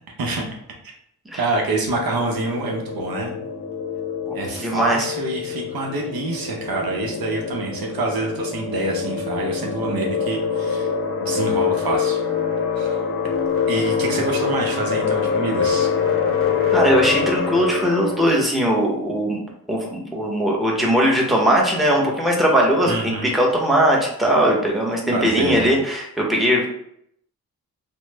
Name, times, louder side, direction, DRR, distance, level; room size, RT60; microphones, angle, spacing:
voice 1, 1.4-3.3 4.3-10.9 11.2-12.2 12.8-12.9 13.7-15.9 22.9-23.3 25.1-25.7, right 2 dB, 70° right, 0 dB, 0.7 m, -26 dB
sound 1, 1.9-18.4, left 6 dB, 35° left, 0.6 m, -25 dB
voice 2, 4.6-5.0 16.7-19.4 19.7-22.9 23.2-26.7, equal, ahead, -2 dB, 0.8 m, -19 dB
3.0 x 2.1 x 3.3 m, 0.70 s
cardioid pair, 60°, 37 cm